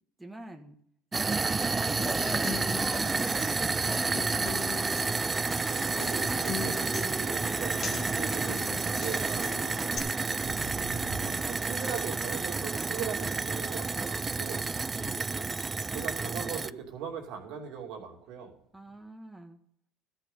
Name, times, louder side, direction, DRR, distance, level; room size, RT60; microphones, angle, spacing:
voice 1, 0.2-0.8 1.1-2.6 2.9-5.0 8.0-8.2 12.6-13.4 14.9-15.4 18.7-19.6, right 1 dB, 10° right, 3 dB, 1.5 m, -45 dB
sound 1, 1.1-16.7, right 4 dB, 25° right, 0.3 m, -30 dB
Human voice / Acoustic guitar, 2.0-10.0, left 6 dB, 40° left, 1.5 m, -40 dB
voice 2, 5.7-9.6 10.2-10.4 10.8-14.7 15.9-18.5, right 7 dB, 70° right, 1 dB, 2.6 m, -40 dB
sound 2, 8.9-18.5 18.9-19.0, right 4 dB, 50° right, 1.5 m, -48 dB
13.5 x 6.1 x 6.7 m, 0.66 s
hypercardioid pair, 75°, 0 cm